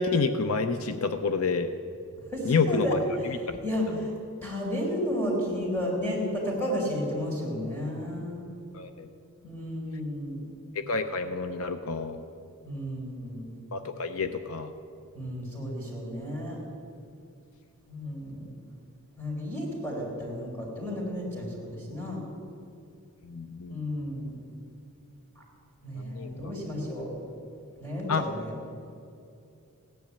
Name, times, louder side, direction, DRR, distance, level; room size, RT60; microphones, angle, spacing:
voice 1, 0.0-1.7 2.5-3.0 3.5-3.6 8.7-9.1 10.9-12.2 13.7-14.7 23.3-23.8 26.1-26.5 28.1-28.2, left 4 dB, 70° left, 9 dB, 0.7 m, -28 dB
voice 2, 2.3-4.1 4.4-8.5 9.4-10.5 12.6-13.5 15.1-16.6 17.9-18.5 19.2-22.2 23.7-24.4 25.4-25.5 25.8-27.1 27.8-28.5, equal, 10° left, -2 dB, 4.4 m, -32 dB
16.5 x 10.5 x 8.5 m, 2.5 s
head